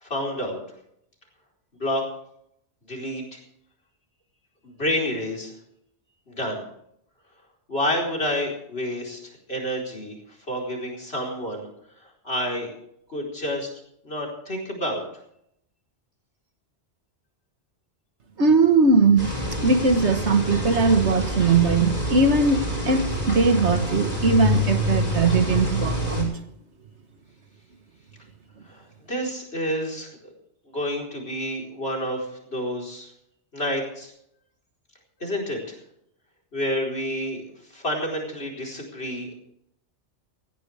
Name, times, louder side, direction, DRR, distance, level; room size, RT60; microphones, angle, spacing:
voice 1, 0.0-0.6 1.8-2.0 2.9-3.4 4.6-5.5 6.3-6.6 7.7-9.2 9.5-10.2 10.5-11.7 12.2-12.7 13.1-13.7 14.0-15.0 28.7-28.8 29.1-30.1 30.7-33.1 33.5-34.1 35.2-35.7 36.5-37.4 37.7-39.3, equal, 60° left, 0 dB, 4.6 m, -29 dB
voice 2, 18.4-19.4 19.6-26.4, right 4 dB, 75° right, 8 dB, 1.8 m, -20 dB
sound 1, 19.2-26.2, left 1 dB, 35° left, 5.5 m, -27 dB
18.0 x 15.0 x 3.5 m, 0.73 s
omnidirectional pair, 1.2 m